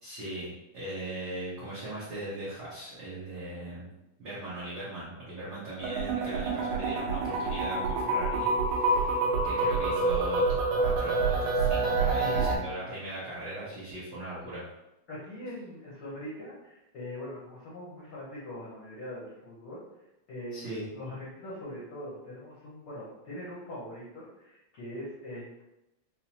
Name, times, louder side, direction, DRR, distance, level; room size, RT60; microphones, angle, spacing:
voice 1, 0.0-3.9 4.2-14.6 20.5-20.9, right 1 dB, 70° right, -10 dB, 1.1 m, -39 dB
Dreams Of My Machine, 5.8-12.6, right 3 dB, 85° right, 2.4 m, -27 dB
voice 2, 12.0-12.5 15.1-19.8 20.3-25.6, left 1 dB, 85° left, -7 dB, 1.1 m, -42 dB
5.6 x 2.0 x 2.8 m, 0.91 s
omnidirectional pair, 3.7 m